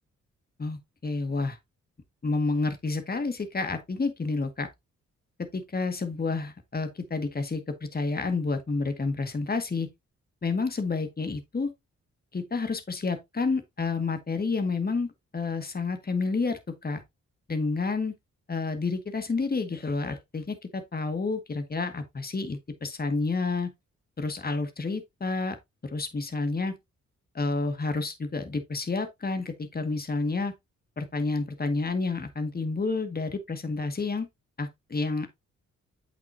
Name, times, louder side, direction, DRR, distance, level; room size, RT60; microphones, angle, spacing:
voice 1, 0.6-1.6 2.2-4.7 5.4-9.9 10.4-11.7 12.3-17.0 17.5-18.1 18.5-23.7 24.2-25.6 25.9-26.8 27.3-30.5 31.0-34.3 34.6-35.3, left 3 dB, 30° left, 1.8 m, -29 dB
8.3 x 6.0 x 2.7 m
cardioid pair, 70°, 29 cm